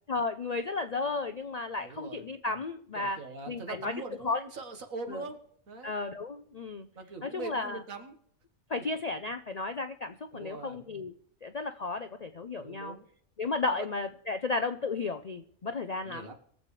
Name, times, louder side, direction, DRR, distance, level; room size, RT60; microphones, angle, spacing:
voice 1, 0.1-3.2 3.5-3.9 4.2-4.4 5.1-5.2 5.8-6.9 7.2-7.8 8.7-11.1 11.4-13.0 13.4-16.3, left 3 dB, 55° left, 9 dB, 0.4 m, -33 dB
voice 2, 1.8-2.2 2.9-5.4 5.7-5.9 7.0-8.2 10.3-10.8 12.6-13.0 13.7-13.9 16.0-16.4, right 3 dB, 75° right, 7 dB, 1.8 m, -42 dB
22.5 x 7.6 x 3.2 m, 0.68 s
omnidirectional pair, 1.4 m